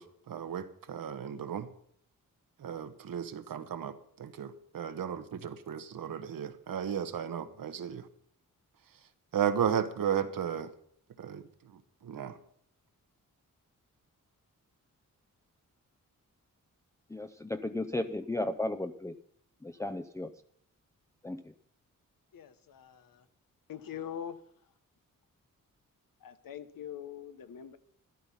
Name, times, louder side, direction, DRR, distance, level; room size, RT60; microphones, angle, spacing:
voice 1, 0.0-1.7 2.6-8.1 8.9-10.7 11.2-12.4, right 8 dB, 80° right, 1.2 m, -35 dB
voice 2, 17.1-19.1 19.6-20.3 21.2-21.5, left 1 dB, 10° left, 0.6 m, -35 dB
voice 3, 22.3-23.2 23.7-24.4 26.2-27.8, left 9 dB, 80° left, 1.1 m, -43 dB
12.5 x 12.0 x 5.6 m
cardioid pair, 85°, 33 cm